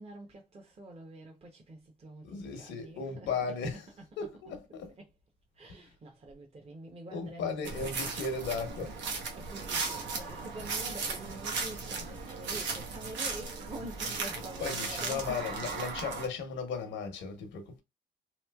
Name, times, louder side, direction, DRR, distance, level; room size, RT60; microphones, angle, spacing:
voice 1, 0.0-4.3 5.0-5.1 5.5-8.2 9.4-15.7, right 2 dB, 35° right, 0.7 m, -47 dB
voice 2, 2.2-3.9 4.2-4.9 5.8-5.9 7.1-9.0 12.3-12.4 14.3-17.8, left 5 dB, 90° left, 0.8 m, -36 dB
sound 1, 7.6-16.3, right 4 dB, 90° right, 0.8 m, -36 dB
3.0 x 2.9 x 2.2 m
cardioid pair, 100°, 19 cm